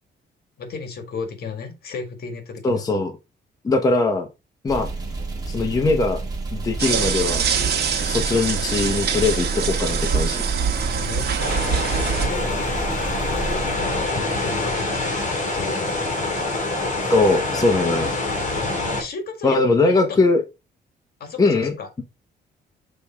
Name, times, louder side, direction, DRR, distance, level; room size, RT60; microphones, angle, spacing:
voice 1, 0.6-2.9 10.7-11.3 12.3-12.7 13.2-16.0 18.8-20.2 21.2-22.0, left 5 dB, 60° left, 1.7 m, -34 dB
voice 2, 2.6-3.1 3.6-4.3 4.6-4.9 5.5-6.2 6.5-7.4 8.0-10.4 17.1-18.1 19.4-20.4 21.4-22.0, left 3 dB, 20° left, 0.9 m, -20 dB
sound 1, 4.7-14.5, right 3 dB, 20° right, 1.7 m, -30 dB
sound 2, 6.8-12.3, right 7 dB, 65° right, 1.6 m, -24 dB
sound 3, 11.4-19.0, left 2 dB, 45° left, 2.6 m, -25 dB
6.8 x 3.5 x 4.2 m
cardioid pair, 160°, 18 cm